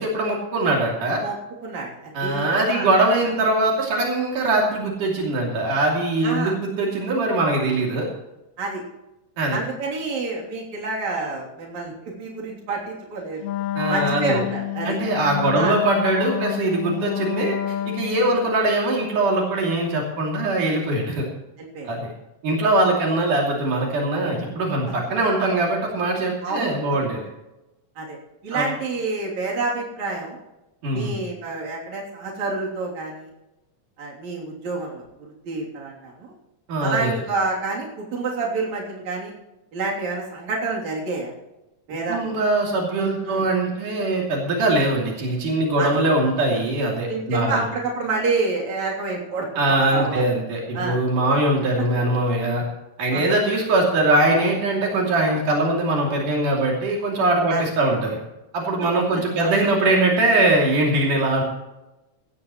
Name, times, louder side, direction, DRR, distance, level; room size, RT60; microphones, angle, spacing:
voice 1, 0.0-1.2 2.1-8.1 9.4-9.6 13.8-14.4 14.9-17.6 17.9-21.3 21.8-22.1 22.4-27.3 28.5-28.7 30.8-31.2 36.7-37.1 42.1-47.6 49.6-52.6 53.0-58.2 58.5-61.4, right 2 dB, 80° right, -2 dB, 4.4 m, -22 dB
voice 2, 1.6-2.9 6.2-6.5 8.6-8.8 9.5-13.4 13.9-15.0 15.6-15.8 21.6-21.9 26.4-26.8 28.0-28.2 28.4-30.4 30.9-33.3 34.0-36.3 36.8-39.3 39.7-41.3 41.9-42.3 43.2-43.5 45.8-46.0 47.1-49.5 49.9-50.3 50.7-51.0 51.8-51.9 53.1-53.4 57.5-57.6 59.4-59.6, right 3 dB, 60° right, -3 dB, 4.5 m, -28 dB
Wind instrument woodwind instrument, 13.4-18.5, left 12 dB, 75° left, 1.8 m, -29 dB
16.5 x 15.5 x 3.1 m, 0.97 s
omnidirectional pair, 3.6 m